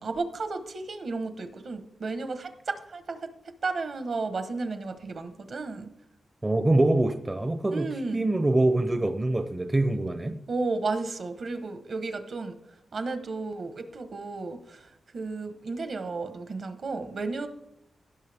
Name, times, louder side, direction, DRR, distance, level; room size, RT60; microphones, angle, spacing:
voice 1, 0.0-3.3 3.6-5.9 7.7-8.2 10.5-12.5 12.9-17.5, right 3 dB, 55° right, 1.2 m, -33 dB
voice 2, 6.4-10.4, right 2 dB, 20° right, 0.6 m, -24 dB
16.5 x 6.5 x 3.5 m
wide cardioid pair, 120°, 0 cm